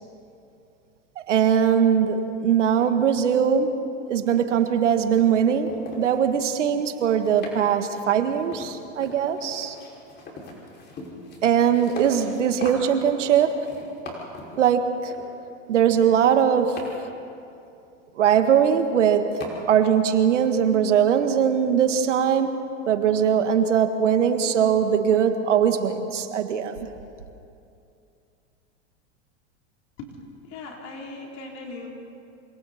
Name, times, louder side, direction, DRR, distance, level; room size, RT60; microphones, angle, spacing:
voice 1, 1.2-3.8 4.1-9.8 11.4-13.7 14.6-15.1 15.7-16.8 18.2-19.4 19.7-22.6 22.9-26.9, right 8 dB, 85° right, 1.7 m, -21 dB
sound 1, 4.6-4.9 5.2-6.2 6.9-7.6 7.9-14.6 15.1-15.3 16.0-17.0 18.4-18.5 18.7-19.0 19.4-19.5, left 2 dB, 30° left, 5.8 m, -41 dB
voice 2, 30.4-31.9, left 3 dB, 45° left, 3.9 m, -39 dB
27.0 x 26.0 x 4.3 m
hypercardioid pair, 115°, 36 cm